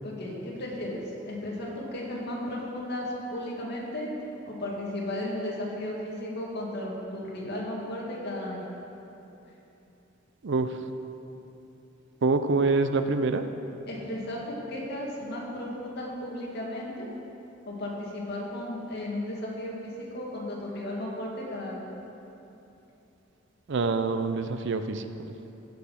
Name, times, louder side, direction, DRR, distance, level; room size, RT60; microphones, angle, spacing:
voice 1, 0.0-4.1 4.5-8.7 13.9-17.1 17.7-21.9, left 1 dB, 55° left, -3 dB, 2.3 m, -35 dB
voice 2, 10.4-10.8 12.2-13.4 23.7-25.0, right 3 dB, 65° right, 9 dB, 0.5 m, -25 dB
16.0 x 5.7 x 5.9 m, 3.0 s
head